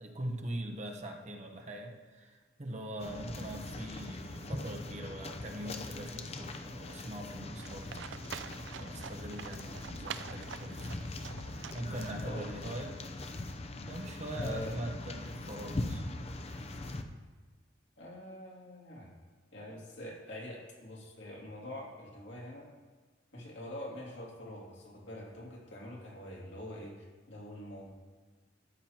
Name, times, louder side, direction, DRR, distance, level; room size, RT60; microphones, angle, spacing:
voice 1, 0.0-7.9 8.3-10.9 11.7-13.0 13.9-16.0, right 1 dB, 40° right, 2 dB, 1.0 m, -42 dB
sound 1, 3.0-17.0, left 2 dB, 35° left, 0.6 m, -41 dB
Livestock farm animals working animals, 7.6-12.5, right 8 dB, 75° right, 0.4 m, -46 dB
voice 2, 12.2-12.5 14.4-14.8 18.0-19.2 19.5-22.7 23.3-27.9, left 1 dB, 70° left, -3 dB, 2.5 m, -45 dB
13.0 x 9.1 x 2.9 m, 1.4 s
head